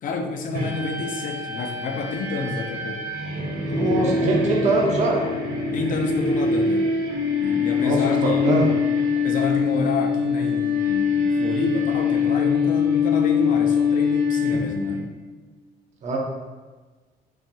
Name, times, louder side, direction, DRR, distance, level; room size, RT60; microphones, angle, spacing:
voice 1, 0.0-3.0 3.7-4.2 5.7-6.9 7.4-8.6 9.2-15.2, left 4 dB, 50° left, 4 dB, 0.6 m, -29 dB
sound 1, 0.5-15.0, left 5 dB, 85° right, 1.5 m, -23 dB
voice 2, 3.7-5.2 7.8-8.7 16.0-16.2, right 2 dB, 45° right, -3 dB, 0.9 m, -22 dB
6.3 x 2.9 x 2.3 m, 1.3 s
cardioid pair, 110°, 17 cm